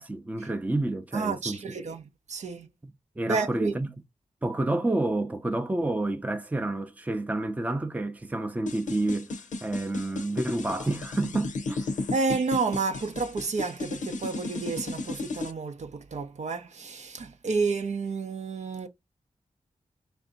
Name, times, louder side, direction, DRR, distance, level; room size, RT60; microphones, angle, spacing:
voice 1, 0.0-1.6 3.2-3.9 4.4-9.3 9.6-11.9, right 2 dB, 10° right, 0.6 m, -29 dB
voice 2, 1.1-2.7 3.2-3.8 12.1-18.9, right 4 dB, 60° right, 0.7 m, -30 dB
sound 1, 8.7-15.5, left 3 dB, 75° left, 0.6 m, -34 dB
3.5 x 2.6 x 3.8 m
wide cardioid pair, 95°, 13 cm